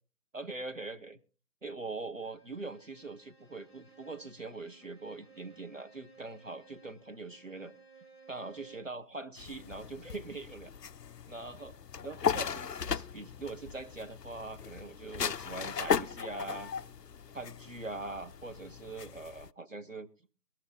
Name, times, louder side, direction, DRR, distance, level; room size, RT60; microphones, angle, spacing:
voice 1, 0.3-1.2 1.6-7.7 8.3-10.7 11.3-16.7 17.3-20.1, right 3 dB, 55° right, 8 dB, 1.2 m, -42 dB
Bowed string instrument, 2.2-9.0, right 5 dB, 70° right, 5.1 m, -58 dB
sound 1, 9.4-19.5, left 7 dB, 90° left, 0.6 m, -37 dB
22.0 x 13.0 x 2.3 m, 0.36 s
figure-of-eight pair, 170°, 47 cm